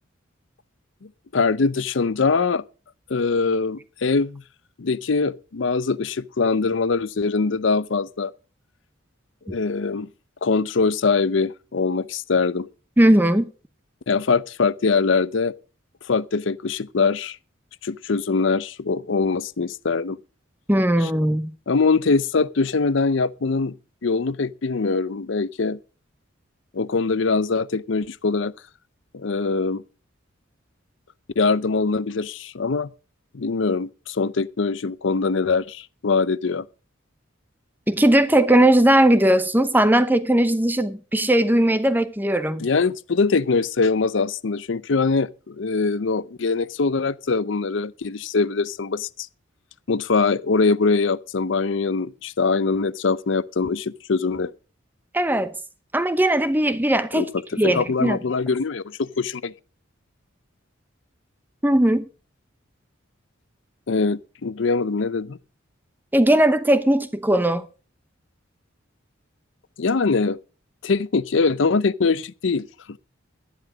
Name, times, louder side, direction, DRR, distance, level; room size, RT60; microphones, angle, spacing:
voice 1, 1.0-2.6 3.1-4.4 4.8-8.3 9.5-10.1 10.4-12.7 14.1-15.5 16.1-17.4 17.8-20.2 21.0-21.1 21.7-23.8 24.0-25.8 26.7-28.5 29.1-29.8 31.4-32.9 33.3-36.7 42.6-49.3 49.9-54.5 57.1-57.3 57.6-59.5 63.9-65.4 69.8-70.4 70.8-73.0, left 4 dB, 65° left, 0.6 m, -23 dB
voice 2, 13.0-13.5 20.7-21.5 37.9-42.7 55.1-55.5 55.9-57.3 57.6-58.2 61.6-62.0 66.1-67.7, right 1 dB, 10° right, 0.8 m, -18 dB
12.0 x 10.5 x 5.0 m
head